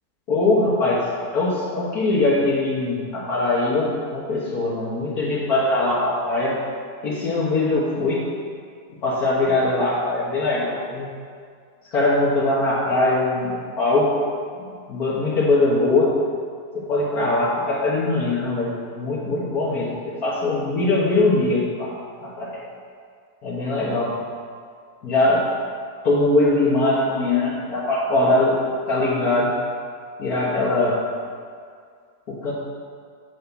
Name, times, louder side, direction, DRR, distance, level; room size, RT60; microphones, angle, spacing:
voice 1, 0.3-6.6 7.0-8.2 9.0-11.1 11.9-14.2 14.9-16.1 16.7-22.0 22.2-22.6 23.4-24.1 25.0-25.5 26.0-29.5 30.2-31.0 32.3-32.5, left 2 dB, 75° left, -7 dB, 1.9 m, -21 dB
8.6 x 4.6 x 7.0 m, 2.1 s
omnidirectional pair, 1.6 m